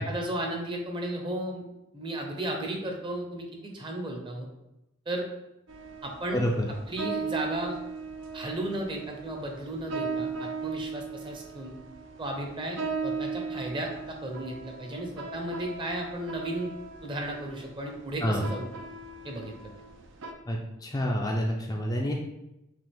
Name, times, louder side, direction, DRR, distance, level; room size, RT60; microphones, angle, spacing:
voice 1, 0.0-1.6 1.9-4.5 5.1-5.3 6.0-6.4 6.9-7.8 8.3-11.7 12.2-16.7 17.0-18.7 19.2-19.7, right 1 dB, 25° right, 1 dB, 0.7 m, -34 dB
sound 1, 5.7-20.3, right 4 dB, 60° right, 0.5 m, -38 dB
voice 2, 6.3-6.7 18.2-18.5 20.5-22.1, equal, 20° left, -1 dB, 0.4 m, -28 dB
6.0 x 2.5 x 3.5 m, 0.91 s
head